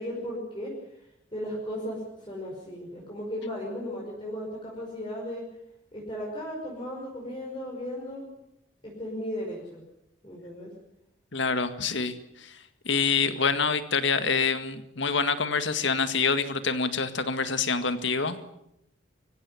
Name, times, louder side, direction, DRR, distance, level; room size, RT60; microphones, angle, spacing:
voice 1, 0.0-5.5 5.9-8.3 8.8-9.8 10.2-10.7, equal, 25° left, -3 dB, 5.6 m, -36 dB
voice 2, 11.3-12.6 12.9-18.4, left 5 dB, 60° left, 10 dB, 2.0 m, -26 dB
24.5 x 16.0 x 10.0 m, 0.83 s
head